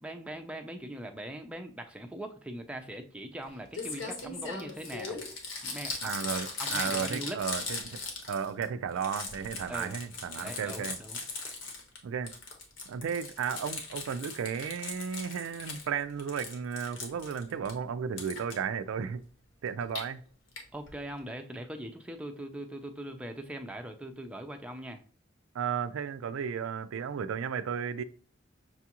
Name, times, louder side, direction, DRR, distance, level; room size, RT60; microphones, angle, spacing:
voice 1, 0.0-5.2 5.6-6.2 6.6-7.4 9.7-10.0 10.4-11.2 20.7-25.0, right 1 dB, 5° right, 0.4 m, -41 dB
Crumpling crinkling, 3.4-3.5 3.7-8.6 8.9-12.0 12.3-15.9 16.2-17.7 18.2-18.5 19.7-20.0 20.6-20.7 20.9-21.0 21.2-21.3, left 3 dB, 70° left, 1.0 m, -39 dB
voice 2, 6.0-8.0 8.3-11.0 12.0-12.3 12.9-19.2 19.6-20.2 25.5-28.0, right 7 dB, 90° right, 0.4 m, -34 dB
6.0 x 2.4 x 2.9 m
head